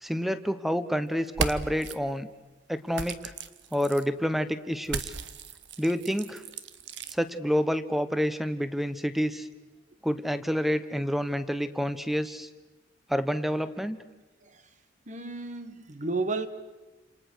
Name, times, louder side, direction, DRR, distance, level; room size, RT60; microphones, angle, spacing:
voice 1, 0.0-2.3 2.7-3.3 3.7-5.1 5.8-6.4 7.1-9.5 10.0-12.5 13.1-14.0, equal, ahead, 1.2 m, -28 dB
sound 1, 1.3-2.0 2.9-4.1 4.8-7.2, right 5 dB, 70° right, 1.2 m, -35 dB
voice 2, 15.1-16.5, right 3 dB, 40° right, 1.6 m, -32 dB
29.0 x 28.0 x 6.4 m
head